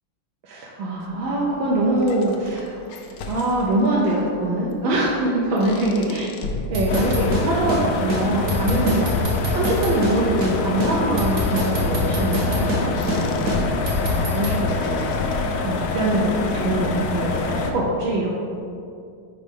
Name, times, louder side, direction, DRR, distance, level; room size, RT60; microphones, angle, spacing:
voice 1, 0.4-2.9 3.3-6.3 6.7-9.3 9.5-15.4 15.6-18.3, right 1 dB, 75° right, -5 dB, 1.5 m, -23 dB
sound 1, 1.0-16.0, left 3 dB, 70° left, 1.1 m, -37 dB
sound 2, 6.7-7.8 8.1-8.2 8.5-10.2 10.4-10.5 10.8-12.8 13.1-13.2 13.5-14.6, equal, 55° right, 1.0 m, -24 dB
sound 3, 6.9-17.7, left 3 dB, 90° left, 0.8 m, -26 dB
4.9 x 4.3 x 5.2 m, 2.4 s
omnidirectional pair, 2.2 m